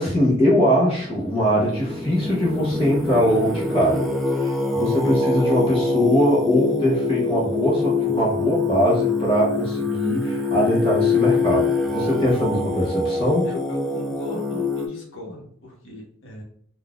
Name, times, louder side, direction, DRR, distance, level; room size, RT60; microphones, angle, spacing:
voice 1, 0.0-13.5, equal, 25° left, -6 dB, 0.8 m, -21 dB
Singing, 1.0-14.9, left 3 dB, ahead, 0.3 m, -24 dB
voice 2, 13.4-16.4, left 1 dB, 65° left, -1 dB, 1.1 m, -37 dB
3.8 x 2.4 x 2.3 m, 0.68 s
head